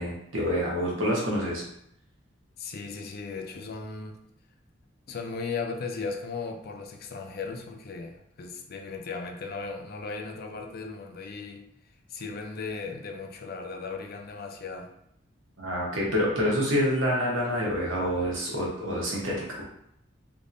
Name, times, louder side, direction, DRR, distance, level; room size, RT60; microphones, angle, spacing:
voice 1, 0.0-1.6 15.6-19.4, equal, 90° right, -4 dB, 1.2 m, -27 dB
voice 2, 2.6-4.2 5.1-11.6 12.1-14.9, left 4 dB, 55° left, 3 dB, 0.5 m, -36 dB
3.4 x 2.9 x 2.6 m, 0.74 s
head